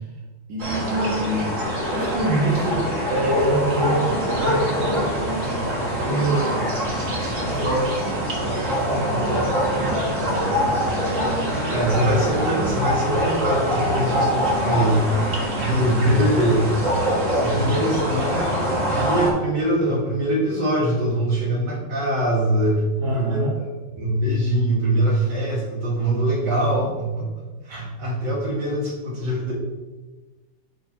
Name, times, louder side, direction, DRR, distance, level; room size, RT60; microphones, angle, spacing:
voice 1, 0.5-10.8 23.0-23.5, right 2 dB, 85° right, -5 dB, 1.9 m, -27 dB
sound 1, 0.6-19.3, equal, 40° right, 1.8 m, -24 dB
voice 2, 7.5-7.8 11.5-15.1 15.6-16.7 17.4-22.8 23.1-23.4 24.0-29.5, right 1 dB, 65° right, -4 dB, 2.5 m, -23 dB
11.0 x 4.0 x 2.9 m, 1.2 s
omnidirectional pair, 2.1 m